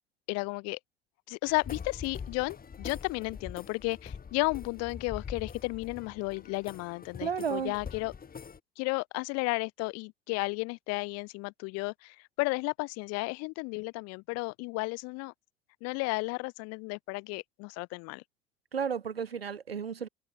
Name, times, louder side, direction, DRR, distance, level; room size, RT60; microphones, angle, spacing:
voice 1, 0.3-0.8 1.3-8.1 8.8-15.3 15.8-18.2, left 27 dB, 55° left, 1.1 m, -33 dB
sound 1, 1.4-8.6, left 6 dB, 30° left, 4.2 m, -44 dB
voice 2, 7.2-7.7 18.7-20.1, right 7 dB, 85° right, 3.7 m, -33 dB
figure-of-eight pair, 55°, 29 cm